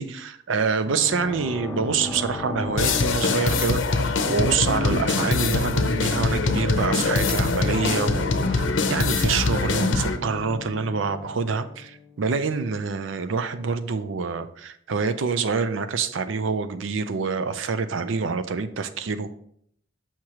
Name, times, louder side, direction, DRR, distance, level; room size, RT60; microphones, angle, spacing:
voice 1, 0.0-19.3, right 5 dB, 80° right, 11 dB, 0.5 m, -26 dB
sound 1, 0.9-12.3, left 3 dB, 10° left, 0.5 m, -36 dB
sound 2, 2.8-10.2, left 3 dB, 75° left, 0.7 m, -23 dB
6.3 x 5.8 x 2.9 m, 0.67 s
head